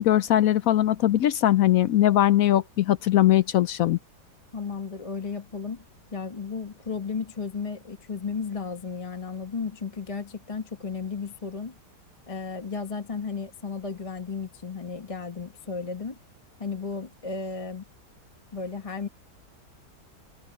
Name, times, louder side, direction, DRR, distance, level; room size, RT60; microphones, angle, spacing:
voice 1, 0.0-4.0, left 13 dB, 70° left, 0.8 m, -20 dB
voice 2, 4.5-5.8 6.1-11.8 12.3-16.2 16.6-17.8 18.5-19.1, left 5 dB, 20° left, 1.2 m, -34 dB
omnidirectional pair, 1.9 m